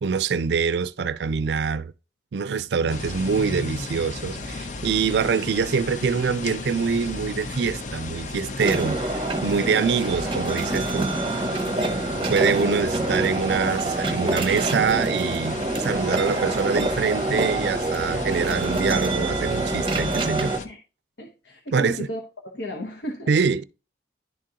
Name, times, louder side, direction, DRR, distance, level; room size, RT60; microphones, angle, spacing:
voice 1, 0.0-1.9 2.3-11.1 12.3-20.5 21.7-22.0 23.3-23.6, right 5 dB, 75° right, 0.4 m, -25 dB
sound 1, 2.9-20.7, left 3 dB, 45° left, 0.6 m, -34 dB
sound 2, 8.6-20.6, right 2 dB, 30° right, 0.6 m, -26 dB
voice 2, 21.2-22.2 22.5-23.3, left 1 dB, 80° left, 1.0 m, -34 dB
11.0 x 3.7 x 2.8 m
head